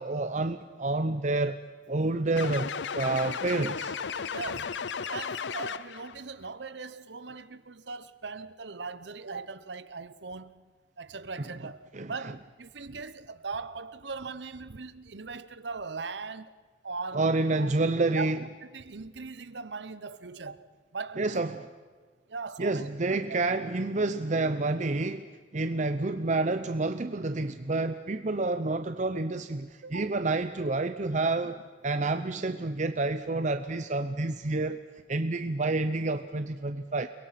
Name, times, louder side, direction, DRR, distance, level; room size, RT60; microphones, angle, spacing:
voice 1, 0.0-1.6 1.9-3.9 11.9-12.1 17.1-18.4 21.2-21.7 22.6-31.6 31.8-34.8 35.1-37.1, right 2 dB, 40° right, 0.7 m, -29 dB
sound 1, 2.4-6.1, left 6 dB, 75° left, 0.6 m, -34 dB
voice 2, 4.3-4.8 5.1-16.6 16.8-17.3 17.6-17.7 18.1-20.7 20.9-21.4 22.3-23.4 29.8-30.1 31.4-31.5, right 4 dB, 75° right, 1.0 m, -40 dB
29.5 x 22.5 x 5.9 m
head